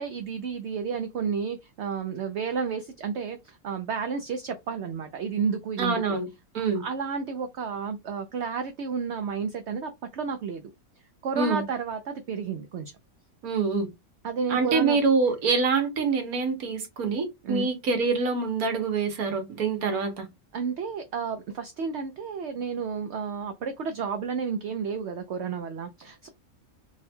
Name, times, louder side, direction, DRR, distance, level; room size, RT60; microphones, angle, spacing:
voice 1, 0.0-6.2 6.7-10.7 11.2-12.9 14.2-15.0 17.4-17.7 20.5-26.3, right 6 dB, 65° right, 0.7 m, -31 dB
voice 2, 5.8-6.3 6.5-6.8 11.4-11.6 13.4-13.9 14.5-20.3, right 4 dB, 80° right, 1.4 m, -25 dB
3.6 x 2.2 x 4.1 m
omnidirectional pair, 1.5 m